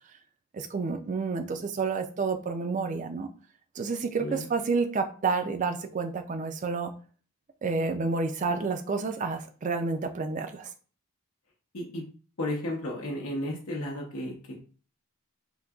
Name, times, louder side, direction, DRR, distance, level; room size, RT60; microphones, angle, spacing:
voice 1, 0.5-3.3 3.8-6.9 7.6-10.7, right 4 dB, 35° right, 8 dB, 0.3 m, -29 dB
voice 2, 11.7-12.0 12.4-14.6, left 1 dB, 70° left, -3 dB, 0.7 m, -33 dB
3.8 x 2.7 x 2.3 m, 0.40 s
head